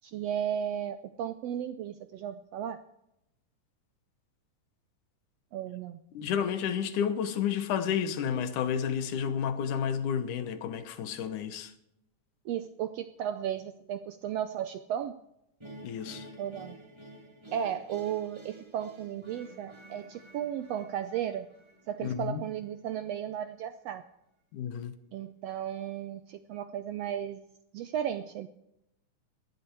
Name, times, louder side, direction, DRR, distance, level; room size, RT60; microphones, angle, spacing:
voice 1, 0.0-2.8 5.5-6.0 12.4-15.2 16.4-16.7 17.5-21.5 21.9-24.0 25.1-27.4 27.7-28.5, right 9 dB, 80° right, 1.5 m, -35 dB
voice 2, 6.1-11.7 15.8-16.3 22.0-22.5 24.5-24.9, left 8 dB, 80° left, 2.6 m, -31 dB
sound 1, 15.6-22.7, right 1 dB, 10° right, 1.5 m, -50 dB
18.5 x 12.0 x 4.7 m
omnidirectional pair, 3.6 m